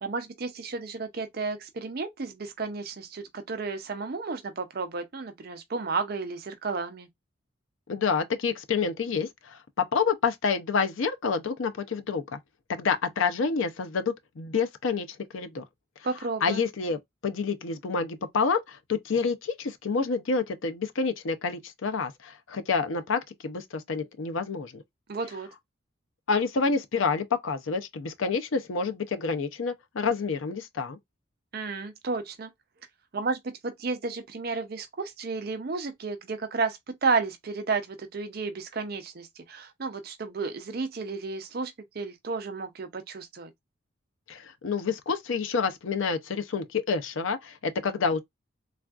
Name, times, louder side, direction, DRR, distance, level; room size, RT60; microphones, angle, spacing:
voice 1, 0.0-7.1 16.0-16.6 25.1-25.5 31.5-32.5 33.1-43.5, right 4 dB, 50° right, 0.5 m, -32 dB
voice 2, 7.9-12.4 12.7-15.6 16.4-24.8 26.3-31.0 44.3-48.2, left 5 dB, 80° left, 0.5 m, -28 dB
3.4 x 2.4 x 2.3 m
head